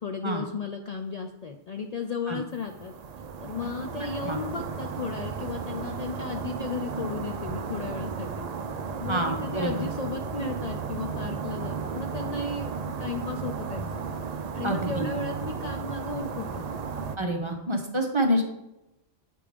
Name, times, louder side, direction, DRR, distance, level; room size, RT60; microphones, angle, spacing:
voice 1, 0.0-2.9 3.4-8.5 9.0-14.1 14.5-16.7, left 4 dB, 85° left, 4 dB, 0.3 m, -35 dB
sound 1, 2.6-17.2, right 5 dB, 70° right, 0.3 m, -34 dB
voice 2, 9.1-9.7 14.6-15.1 17.2-18.4, right 1 dB, 30° right, 3 dB, 0.6 m, -27 dB
8.4 x 3.5 x 5.0 m, 0.91 s
omnidirectional pair, 1.3 m